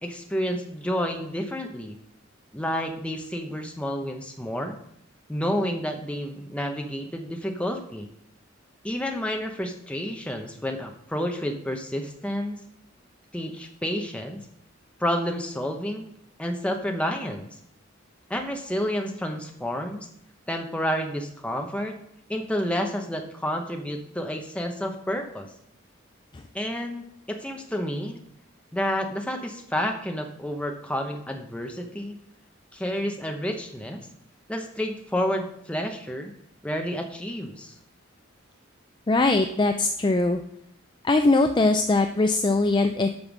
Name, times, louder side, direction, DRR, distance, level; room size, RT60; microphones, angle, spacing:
voice 1, 0.0-2.0 2.5-4.8 5.3-8.1 8.8-12.6 13.3-14.4 15.0-16.0 16.4-17.5 18.3-20.1 20.5-22.0 22.3-25.5 26.5-28.2 28.7-32.2 32.7-34.0 34.5-36.3 36.6-37.7, equal, 5° left, 3 dB, 0.9 m, -30 dB
voice 2, 39.1-40.4 41.0-43.1, left 2 dB, 20° left, 6 dB, 0.4 m, -21 dB
8.6 x 5.8 x 6.1 m, 0.72 s
head